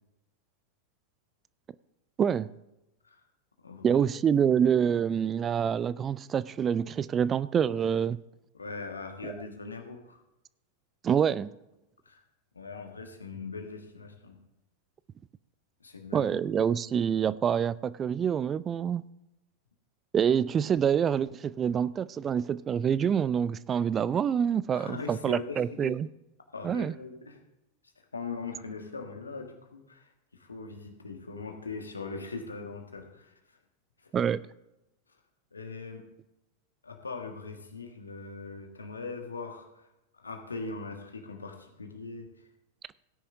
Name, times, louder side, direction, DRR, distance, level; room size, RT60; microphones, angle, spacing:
voice 1, 2.2-2.5 3.8-8.2 9.2-9.3 11.0-11.5 16.1-19.0 20.1-26.1 26.6-26.9 34.1-34.4, right 8 dB, 25° right, 0.3 m, -26 dB
voice 2, 3.6-4.0 8.5-10.2 12.0-12.2 12.5-14.4 15.8-16.3 24.7-26.0 26.5-27.4 28.1-33.3 35.5-36.1 36.8-39.9 40.1-42.3, left 4 dB, 75° left, 1.6 m, -40 dB
17.0 x 9.9 x 2.7 m
figure-of-eight pair, 90°, 0 cm